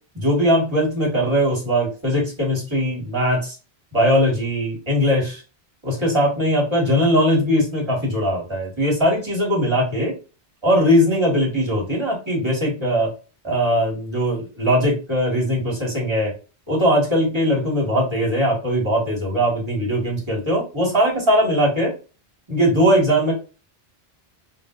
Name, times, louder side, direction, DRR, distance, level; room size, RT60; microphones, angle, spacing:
voice 1, 0.1-3.5 3.9-5.4 5.8-10.1 10.6-13.1 13.4-16.3 16.7-21.9 22.5-23.3, equal, 25° right, -3 dB, 1.6 m, -20 dB
3.7 x 2.6 x 2.4 m, 0.34 s
omnidirectional pair, 1.1 m